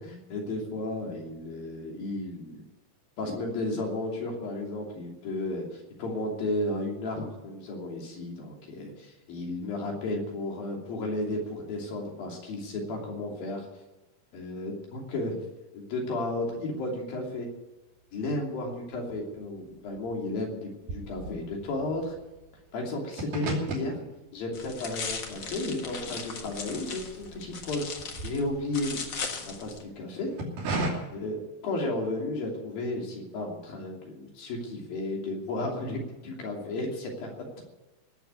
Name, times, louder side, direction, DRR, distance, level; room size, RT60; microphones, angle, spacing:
voice 1, 0.0-2.6 3.2-13.7 14.3-15.4 15.7-17.5 18.1-22.2 22.7-24.0 24.3-29.0 29.5-30.3 31.1-37.3, left 2 dB, 85° left, 0 dB, 4.7 m, -33 dB
sound 1, 18.1-18.9 19.1-27.4 27.7-29.5 30.1-30.9, right 1 dB, 80° right, 4.5 m, -37 dB
sound 2, 24.5-29.8, left 5 dB, 45° left, 1.5 m, -38 dB
18.0 x 7.7 x 9.7 m, 1.1 s
omnidirectional pair, 4.0 m